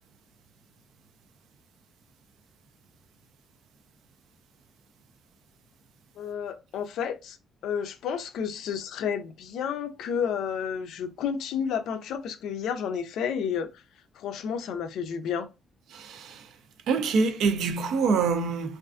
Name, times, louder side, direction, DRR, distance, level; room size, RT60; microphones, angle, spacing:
voice 1, 6.2-7.4 7.6-13.7 14.2-15.5, left 7 dB, 80° left, 0.3 m, -31 dB
voice 2, 15.9-16.6 16.9-18.8, right 4 dB, 80° right, 0.4 m, -26 dB
2.4 x 2.3 x 2.4 m
cardioid pair, 110°, 0 cm